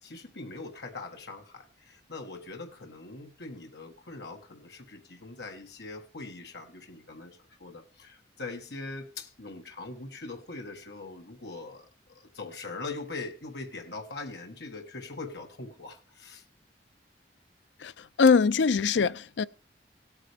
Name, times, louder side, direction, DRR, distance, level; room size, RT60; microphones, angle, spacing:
voice 1, 0.0-16.4 18.9-19.1, left 3 dB, 70° left, 1.6 m, -42 dB
voice 2, 17.8-19.4, left 5 dB, 90° left, 0.5 m, -23 dB
17.5 x 8.9 x 3.5 m
head